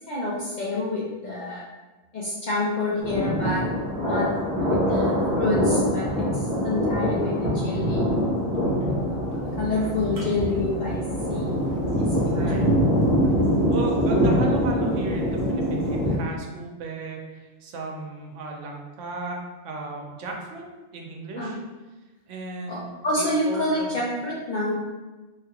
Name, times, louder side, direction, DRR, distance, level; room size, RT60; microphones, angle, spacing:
voice 1, 0.1-1.6 2.1-3.7 4.0-4.3 4.6-8.1 8.9-11.0 11.3-11.6 11.9-12.0 21.4-21.6 22.7-24.7, left 2 dB, 60° left, -6 dB, 0.4 m, -28 dB
Thunder, 3.0-16.2, equal, 40° right, 0.7 m, -24 dB
sound 1, 8.1-16.6, right 3 dB, 40° left, 1.0 m, -40 dB
voice 2, 12.3-12.7 13.7-19.4 19.6-20.6 20.9-21.6 22.3-23.9, right 3 dB, 85° right, 1 dB, 0.9 m, -35 dB
3.0 x 2.4 x 2.8 m, 1.2 s
omnidirectional pair, 1.2 m